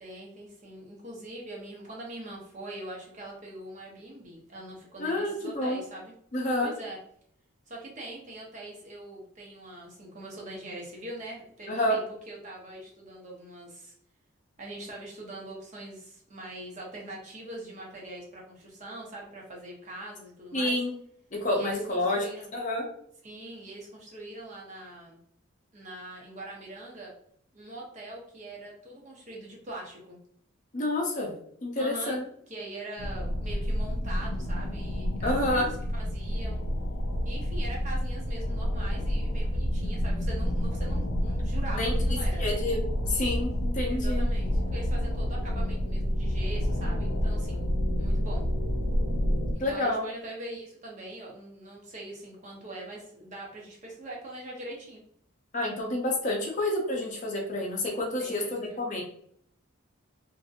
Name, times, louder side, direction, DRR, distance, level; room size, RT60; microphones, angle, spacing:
voice 1, 0.0-6.1 6.6-7.0 7.7-13.9 14.6-20.8 21.5-22.5 23.2-25.2 25.7-27.1 27.5-30.2 31.7-32.2 32.5-36.6 37.2-42.4 43.8-47.7 48.0-48.4 49.5-55.0 58.2-58.8, right 1 dB, 35° right, -3 dB, 0.7 m, -42 dB
voice 2, 5.0-5.8 6.3-6.7 11.7-12.0 20.5-21.0 21.3-22.8 30.7-31.3 31.6-32.2 35.2-35.7 41.7-41.9 42.4-44.3 49.6-50.1 55.5-59.0, left 1 dB, 35° left, 0 dB, 0.6 m, -29 dB
sound 1, 33.0-49.5, equal, 85° left, 0.5 m, -29 dB
2.8 x 2.6 x 2.4 m, 0.66 s
head